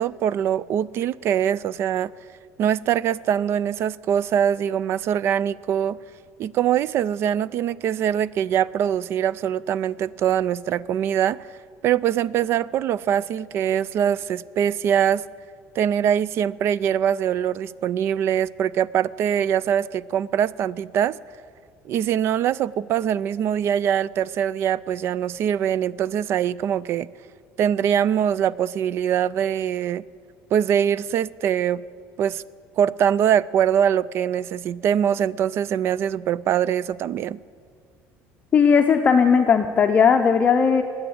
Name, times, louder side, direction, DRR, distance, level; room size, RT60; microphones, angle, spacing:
voice 1, 0.0-2.1 2.6-6.0 6.4-11.4 11.8-15.2 15.8-21.2 21.9-27.1 27.6-30.0 30.5-31.8 32.2-32.4 32.8-37.4, right 9 dB, 45° right, 0.4 m, -23 dB
voice 2, 38.5-40.8, left 6 dB, 25° left, 0.7 m, -17 dB
21.0 x 7.9 x 8.6 m
cardioid pair, 140°, 6 cm